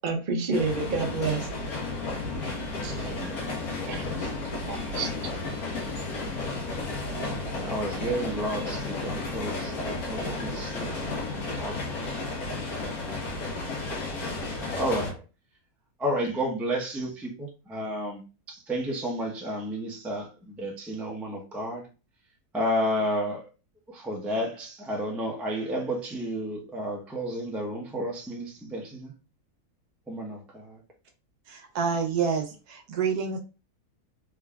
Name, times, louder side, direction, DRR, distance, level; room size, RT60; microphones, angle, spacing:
voice 1, 0.0-1.5 2.8-3.0 3.9-4.2 4.7-5.3, right 4 dB, 45° right, 0.7 m, -29 dB
sound 1, 0.5-15.1, left 3 dB, 70° left, 1.6 m, -33 dB
voice 2, 3.0-3.4 3.9-4.2 7.2-11.7 14.8-15.1 16.0-18.2 18.7-20.2 20.6-21.8 22.5-23.4 24.0-29.1 30.1-30.6, equal, ahead, 0.5 m, -31 dB
voice 3, 31.5-33.4, right 6 dB, 75° right, 1.3 m, -28 dB
3.8 x 3.6 x 2.3 m
omnidirectional pair, 1.6 m